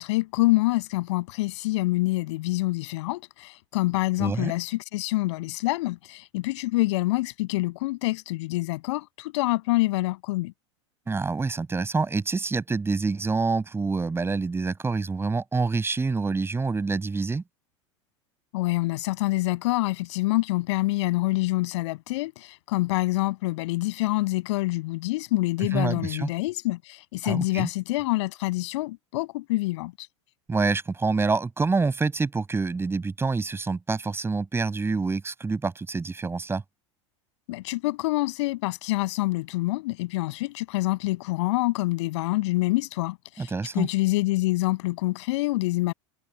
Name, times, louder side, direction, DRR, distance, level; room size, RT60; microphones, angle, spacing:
voice 1, 0.0-10.5 18.5-30.1 37.5-45.9, left 20 dB, 70° left, 7.6 m, -26 dB
voice 2, 4.2-4.5 11.1-17.4 25.6-26.3 27.2-27.7 30.5-36.6 43.4-43.9, right 4 dB, 15° right, 5.8 m, -27 dB
hypercardioid pair, 100°, 15 cm